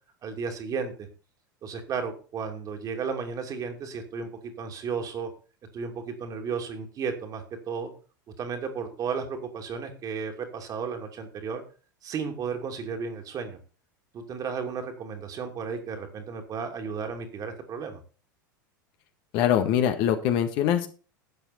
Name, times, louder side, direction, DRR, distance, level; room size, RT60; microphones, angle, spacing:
voice 1, 0.2-1.1 1.6-4.3 4.6-5.3 5.7-7.9 8.4-11.6 12.0-13.6 14.1-18.0, right 5 dB, 35° right, 4 dB, 2.7 m, -33 dB
voice 2, 19.3-20.9, left 10 dB, 45° left, 7 dB, 1.7 m, -23 dB
12.0 x 8.5 x 4.4 m, 0.36 s
figure-of-eight pair, 85°, 11 cm